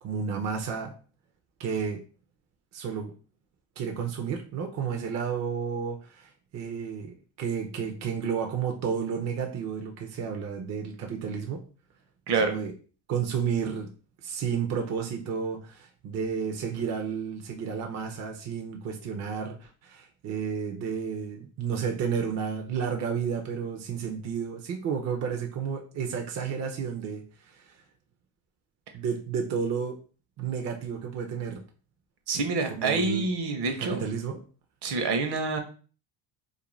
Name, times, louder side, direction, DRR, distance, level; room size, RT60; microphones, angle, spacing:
voice 1, 0.0-0.9 1.6-2.0 2.7-3.1 3.8-11.6 12.4-12.7 13.1-13.9 14.2-27.8 28.9-30.0 30.4-31.6 32.7-33.3 33.7-34.4, right 6 dB, 35° right, 3 dB, 0.5 m, -32 dB
voice 2, 12.3-12.6 32.3-34.0 34.8-35.6, right 3 dB, 55° right, 6 dB, 0.8 m, -27 dB
2.5 x 2.1 x 3.1 m, 0.38 s
supercardioid pair, 95°, 48 cm